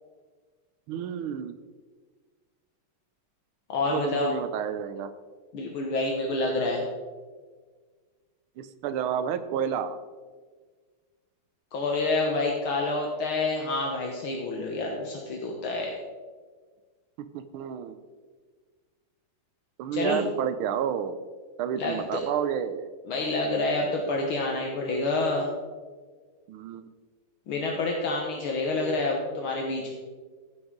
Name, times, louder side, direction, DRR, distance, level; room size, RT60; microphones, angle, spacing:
voice 1, 0.9-1.5 3.8-5.1 8.6-10.0 17.3-18.0 19.8-21.2 21.6-22.9 26.5-26.9, right 8 dB, 75° right, 11 dB, 1.5 m, -30 dB
voice 2, 3.7-4.3 5.5-6.8 11.7-16.0 19.9-20.2 21.8-22.2 23.1-25.5 27.5-29.9, left 2 dB, 70° left, 0 dB, 2.0 m, -28 dB
14.5 x 8.1 x 3.8 m, 1.5 s
omnidirectional pair, 2.4 m